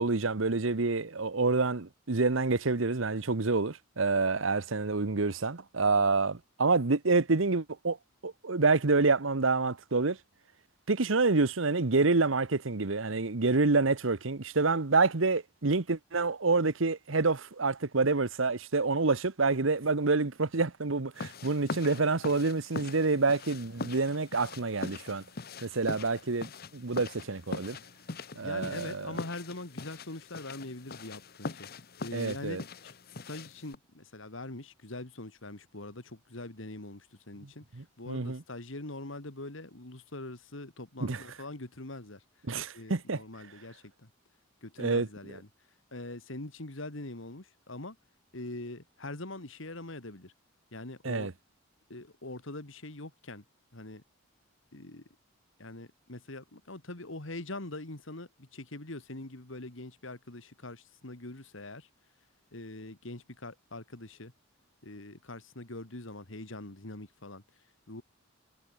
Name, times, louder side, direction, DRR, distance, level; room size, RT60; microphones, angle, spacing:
voice 1, 0.0-8.0 8.2-10.2 10.9-25.2 25.6-27.8 28.4-29.1 32.1-32.6 38.1-38.4 41.0-41.2 42.5-43.2 44.8-45.1 51.0-51.3, right 3 dB, 70° right, 1.1 m, -27 dB
sound 1, 21.1-33.8, left 3 dB, 50° left, 0.9 m, -42 dB
voice 2, 28.4-31.7 32.0-42.2 42.7-44.1 44.6-45.5 45.9-48.0 48.3-50.3 50.7-51.3 51.9-53.4 53.7-54.0 54.7-55.1 55.6-61.9 62.5-64.3 64.8-67.4 67.9-68.0, left 2 dB, 70° left, 2.4 m, -43 dB
head